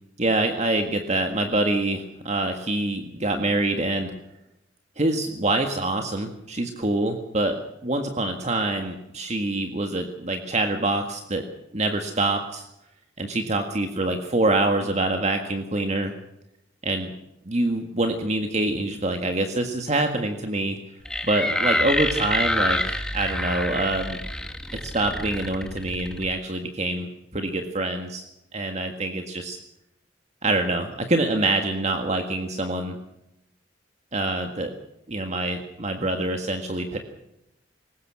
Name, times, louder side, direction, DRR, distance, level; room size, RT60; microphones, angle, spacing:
voice 1, 0.2-4.1 5.0-11.4 11.7-12.7 13.2-16.1 16.8-17.1 17.5-20.8 21.2-24.2 24.8-27.1 27.3-28.3 28.5-29.6 30.4-33.0 34.1-34.7 35.1-37.0, right 2 dB, 40° right, 5 dB, 1.8 m, -25 dB
sound 1, 21.1-26.3, left 1 dB, 5° left, 1.8 m, -27 dB
22.0 x 19.5 x 6.2 m, 0.86 s
head